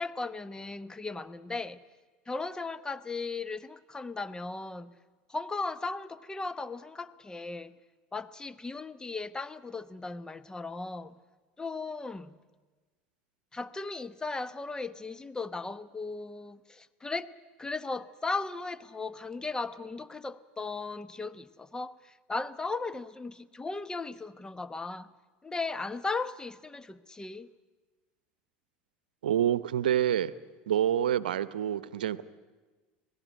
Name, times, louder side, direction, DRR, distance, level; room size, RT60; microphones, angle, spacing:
voice 1, 0.0-1.8 2.3-4.9 5.3-7.7 8.1-11.1 11.6-12.3 13.5-17.3 17.6-25.1 25.4-27.5, left 3 dB, 15° left, 1.0 m, -37 dB
voice 2, 29.2-30.3 30.7-32.2, right 10 dB, 90° right, 0.7 m, -27 dB
26.0 x 18.0 x 9.2 m
hypercardioid pair, 85°, 5 cm